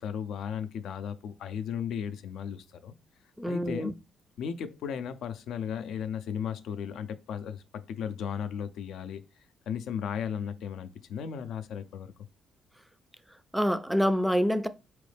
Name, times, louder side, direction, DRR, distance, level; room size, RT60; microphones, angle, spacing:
voice 1, 0.0-2.9 3.5-3.9 4.4-9.2 9.7-12.1, left 8 dB, 75° left, 0.4 m, -35 dB
voice 2, 3.4-3.9 13.5-14.7, equal, 5° right, 0.4 m, -26 dB
4.1 x 3.0 x 3.3 m
cardioid pair, 90°, 0 cm